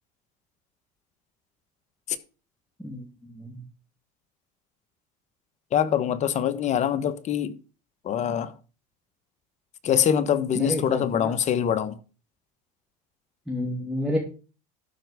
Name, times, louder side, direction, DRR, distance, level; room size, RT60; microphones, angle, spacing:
voice 1, 2.8-3.6 10.5-11.4 13.5-14.2, left 1 dB, ahead, 2.2 m, -30 dB
voice 2, 5.7-7.6 8.0-8.5 9.8-12.0, left 9 dB, 40° left, 1.1 m, -24 dB
12.0 x 4.7 x 6.5 m
supercardioid pair, 105°, 19 cm